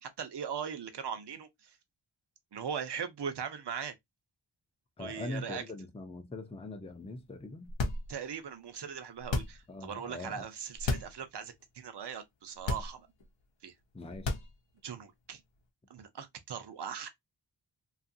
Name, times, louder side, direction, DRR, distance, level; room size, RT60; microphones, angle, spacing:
voice 1, 0.0-1.8 2.5-3.9 5.0-5.6 8.1-13.1 13.6-13.7 14.8-15.4 15.9-17.1, right 7 dB, 60° right, 0.6 m, -40 dB
voice 2, 5.0-7.7 9.7-10.5 13.9-14.4, left 2 dB, 15° left, 0.5 m, -42 dB
sound 1, 7.7-8.4 9.2-9.8 10.8-11.2 11.6-11.7 12.6-13.3 14.1-14.8, left 3 dB, 70° left, 0.7 m, -33 dB
2.8 x 2.4 x 2.6 m
wide cardioid pair, 65°, 47 cm